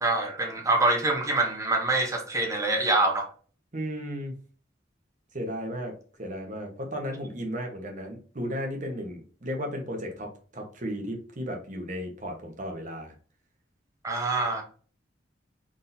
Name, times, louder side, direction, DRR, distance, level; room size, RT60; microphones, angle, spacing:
voice 1, 0.0-3.3 14.0-14.6, right 2 dB, 15° right, 0.9 m, -25 dB
voice 2, 3.7-4.3 5.3-5.9 6.2-13.1, equal, 45° right, 1.1 m, -34 dB
4.1 x 3.7 x 2.7 m
head